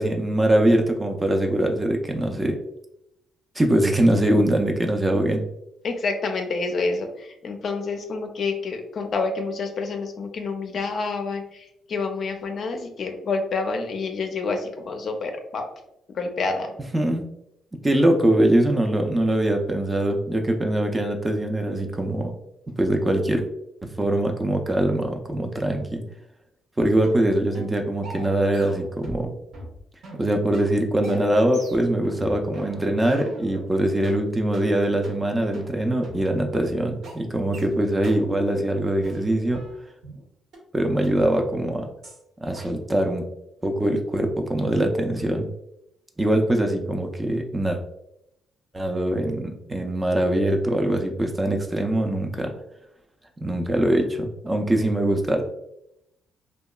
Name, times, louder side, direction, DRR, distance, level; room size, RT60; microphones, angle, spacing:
voice 1, 0.0-2.6 3.6-5.4 16.9-17.2 17.8-22.3 22.8-23.4 23.8-26.0 26.8-29.3 30.2-39.6 40.7-41.9 42.4-43.2 43.6-45.5 46.2-47.8 48.7-52.5 53.4-55.5, right 1 dB, 20° right, 3 dB, 0.4 m, -22 dB
voice 2, 5.8-15.6 16.1-16.7, left 4 dB, 55° left, 4 dB, 0.4 m, -28 dB
sound 1, 27.0-27.2 27.5-27.7 28.0-29.3 29.5-33.7 34.0-34.2 34.5-34.7 35.0-35.2 35.5-35.7 36.0-36.2 36.5-36.7 37.0-37.2 37.5-37.7 38.0-38.2 38.5-38.7 39.0-40.2 40.5-40.6 41.0-41.1 41.5-41.7 42.0-42.2 42.5-42.7, right 1 dB, 70° right, 0.8 m, -40 dB
2.8 x 2.2 x 2.2 m, 0.83 s
cardioid pair, 90°, 0 cm